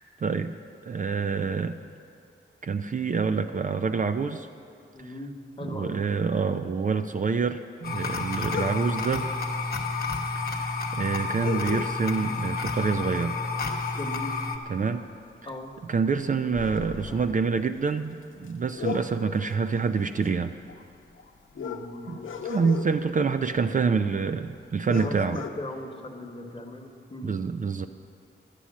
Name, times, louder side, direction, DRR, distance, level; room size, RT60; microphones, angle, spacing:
voice 1, 0.2-0.5 0.8-1.8 2.6-4.5 5.0-5.1 5.6-9.3 10.3-13.4 14.7-15.1 15.4-15.5 15.8-20.5 22.1-22.2 22.4-25.4 27.2-27.9, right 5 dB, 40° right, 8 dB, 0.4 m, -27 dB
voice 2, 4.9-5.3 5.6-6.0 13.9-14.3 15.4-15.7 21.5-22.1 24.9-27.4, left 1 dB, 25° left, 2 dB, 1.2 m, -38 dB
sound 1, 7.8-14.6, left 4 dB, 50° left, 1.0 m, -30 dB
sound 2, 8.5-9.1 10.1-10.2 10.4-10.5 11.4-12.3 12.7-13.0 13.3-14.9 15.3-15.5 15.9-24.3 24.6-24.7 24.9-25.5, left 6 dB, 75° left, 0.8 m, -38 dB
11.5 x 9.8 x 7.3 m, 2.5 s
wide cardioid pair, 150°, 20 cm